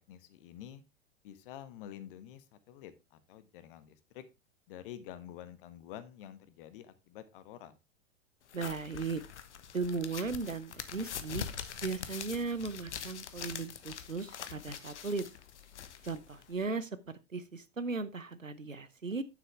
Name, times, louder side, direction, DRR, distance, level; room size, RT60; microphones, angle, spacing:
voice 1, 0.1-0.8 1.2-4.2 4.7-7.7, left 11 dB, 45° left, 13 dB, 1.4 m, -48 dB
sound 1, 8.5-16.7, left 8 dB, 65° left, 1.2 m, -44 dB
voice 2, 8.5-9.2 9.7-11.4 11.8-15.3 16.0-16.9 17.3-19.2, right 4 dB, 90° right, 14 dB, 0.9 m, -36 dB
9.3 x 7.7 x 3.3 m, 0.25 s
figure-of-eight pair, 95°, 38 cm